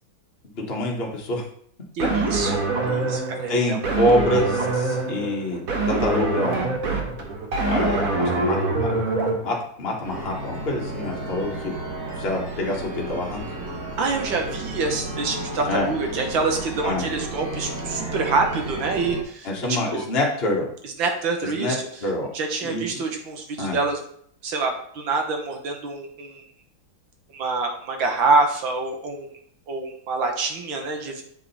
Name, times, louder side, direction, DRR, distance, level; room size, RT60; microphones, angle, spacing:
voice 1, 0.5-1.4 3.5-6.7 7.6-8.9 9.4-11.8 12.2-13.4 15.7-15.9 16.8-17.1 19.4-20.7 21.4-22.3 22.6-23.0 23.6-23.8, left 1 dB, 30° left, -1 dB, 1.5 m, -26 dB
sound 1, 2.0-9.3, right 3 dB, 45° right, 1.6 m, -24 dB
voice 2, 2.0-3.8 14.0-20.1 20.8-21.9 22.3-24.0 24.4-26.4 27.3-29.3 29.7-31.2, right 3 dB, 70° right, 3 dB, 1.9 m, -26 dB
sound 2, 10.0-19.2, right 2 dB, 90° right, 2.7 m, -33 dB
7.7 x 5.0 x 4.2 m, 0.63 s
omnidirectional pair, 2.3 m